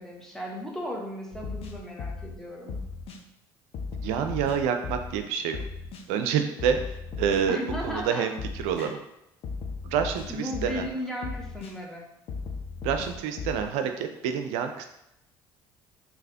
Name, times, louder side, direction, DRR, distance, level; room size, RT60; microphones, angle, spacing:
voice 1, 0.0-2.8 7.5-8.3 8.8-9.0 10.3-12.0, equal, 5° left, -2 dB, 1.0 m, -35 dB
sound 1, 1.3-2.4 2.7-3.2 3.7-5.2 5.5-6.0 6.6-8.0 8.4-8.9 9.4-10.9 11.2-11.7 12.3-13.7, left 4 dB, 55° left, 0.6 m, -36 dB
voice 2, 4.0-5.6 6.1-7.6 7.8-8.3 8.6-9.0 9.8-10.9 12.8-14.8, right 7 dB, 70° right, 7 dB, 0.4 m, -27 dB
3.8 x 2.9 x 2.8 m, 0.82 s
hypercardioid pair, 60°, 12 cm